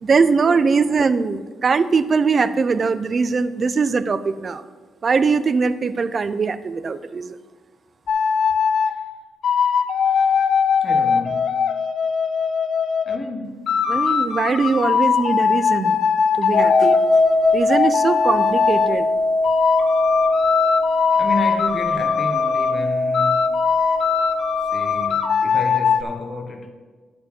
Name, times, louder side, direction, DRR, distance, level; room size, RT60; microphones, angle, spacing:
voice 1, 0.0-4.6 5.0-7.4 13.9-16.0 16.4-17.0 17.5-19.1, right 4 dB, 35° right, 0.4 m, -21 dB
sound 1, 8.1-8.9 9.4-13.2 13.7-19.0 19.4-22.8 23.1-26.0, left 7 dB, 55° left, 0.5 m, -21 dB
voice 2, 10.1-10.5 10.8-11.6 13.1-13.7 21.1-23.6 24.7-26.7, left 2 dB, 30° left, 0.9 m, -31 dB
sound 2, 16.5-25.1, left 2 dB, 80° left, 1.6 m, -21 dB
10.0 x 4.6 x 7.0 m
cardioid pair, 125°, 0 cm